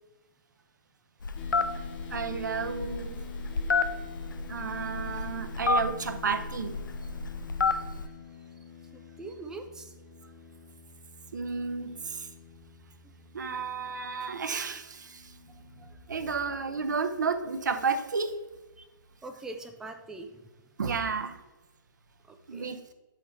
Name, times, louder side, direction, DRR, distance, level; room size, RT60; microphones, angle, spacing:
Telephone, 1.2-8.1, left 4 dB, 65° left, 0.5 m, -31 dB
sound 1, 1.4-16.4, left 8 dB, 30° left, 0.8 m, -48 dB
voice 1, 2.1-3.2 4.5-6.8 11.3-12.3 13.3-15.3 16.1-18.4 20.8-21.4 22.5-22.8, right 5 dB, 60° right, 8 dB, 0.7 m, -32 dB
voice 2, 8.9-9.9 10.2-10.3 15.8-16.0 18.8-18.9 19.2-20.4 22.3-22.7, right 2 dB, 5° right, 5 dB, 0.4 m, -43 dB
7.9 x 5.7 x 3.1 m, 1.1 s
figure-of-eight pair, 130°, 11 cm